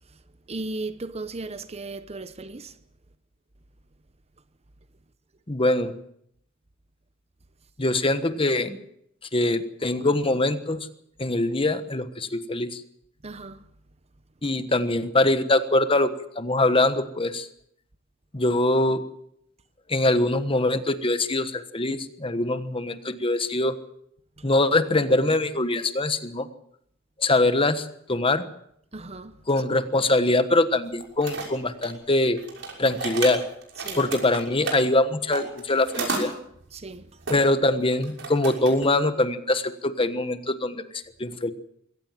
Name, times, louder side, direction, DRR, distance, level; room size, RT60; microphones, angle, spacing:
voice 1, 0.5-2.7 13.2-13.6 24.4-24.5 28.9-29.4 33.8-34.0 36.7-37.1, right 2 dB, 30° right, 0.9 m, -36 dB
voice 2, 5.5-5.9 7.8-8.8 9.3-10.9 11.2-12.8 14.4-16.1 16.4-17.5 18.3-19.0 19.9-23.7 24.4-26.5 27.2-28.5 29.5-32.4 32.8-33.4 34.0-36.3 37.3-40.8 41.2-41.5, left 2 dB, 25° left, 1.3 m, -23 dB
sound 1, 31.0-31.9 32.4-34.8 35.3-36.2 37.3-37.4 37.8-38.8, right 4 dB, 65° right, 6.2 m, -32 dB
22.5 x 17.5 x 7.5 m
head